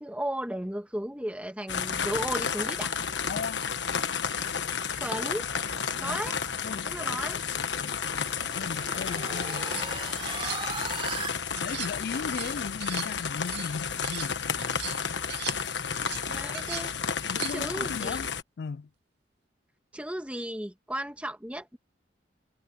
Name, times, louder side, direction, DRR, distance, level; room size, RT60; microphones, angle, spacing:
voice 1, 0.0-2.9 4.9-5.5 6.0-6.4 6.8-7.4 16.3-16.9 17.5-18.3 19.9-21.8, right 1 dB, 5° right, 1.6 m, -35 dB
sound 1, 1.7-18.4, left 6 dB, 75° left, 1.3 m, -32 dB
voice 2, 3.3-3.6 6.0-6.2 6.6-9.7 11.5-14.8 16.3-16.4 17.3-18.3 18.6-18.9, left 5 dB, 60° left, 0.3 m, -38 dB
sound 2, 7.3-11.3, right 4 dB, 30° right, 3.2 m, -39 dB
sound 3, 9.4-9.9 10.3-11.3 11.6-14.3 14.6-17.8, right 14 dB, 60° right, 0.6 m, -40 dB
head